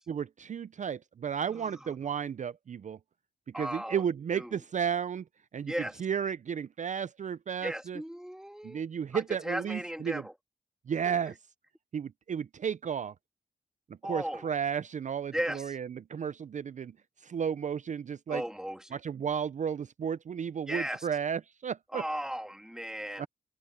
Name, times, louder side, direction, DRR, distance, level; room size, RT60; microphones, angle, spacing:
voice 1, 0.1-3.0 3.5-5.2 5.5-5.7 6.0-8.0 8.6-10.2 10.9-11.3 11.9-13.1 14.0-16.9 17.2-18.4 18.9-22.0 23.2-23.3, right 7 dB, 50° right, 0.4 m, -33 dB
voice 2, 3.5-4.0 4.3-4.6 5.7-6.0 7.6-8.8 9.1-10.3 11.1-11.2 14.0-14.5 15.3-15.8 18.3-19.0 20.7-21.1 21.9-23.3, equal, 5° right, 1.8 m, -36 dB
open air
cardioid pair, 70°, 16 cm